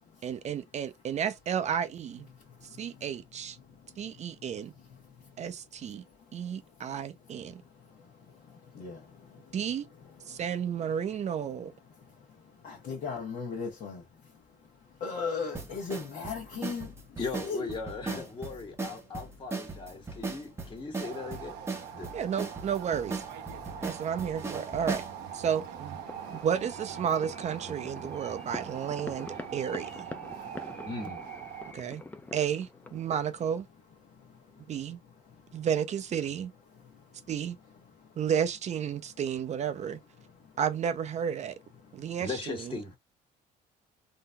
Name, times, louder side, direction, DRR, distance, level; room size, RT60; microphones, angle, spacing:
voice 1, 0.2-2.3 2.8-3.6 4.0-4.7 5.4-6.0 6.3-7.6 9.5-9.9 10.3-11.7 22.1-23.2 23.8-25.0 25.3-26.0 26.3-30.1 31.7-32.0 32.3-33.7 34.7-35.0 35.5-36.5 37.3-37.6 38.2-40.0 40.6-41.6 41.9-42.8, right 8 dB, 40° right, 0.5 m, -32 dB
voice 2, 12.6-14.0 15.0-16.9 17.4-17.6 18.1-18.2, left 5 dB, 60° left, 1.1 m, -35 dB
sound 1, 15.5-25.1, right 3 dB, 15° right, 0.8 m, -37 dB
voice 3, 17.2-21.6 21.9-22.1 30.8-31.2 42.2-43.0, left 4 dB, 30° left, 1.4 m, -38 dB
sound 2, 21.0-31.7, right 9 dB, 90° right, 0.6 m, -42 dB
sound 3, 26.1-33.6, left 2 dB, 10° left, 0.4 m, -45 dB
3.8 x 2.7 x 2.2 m
cardioid pair, 110°, 17 cm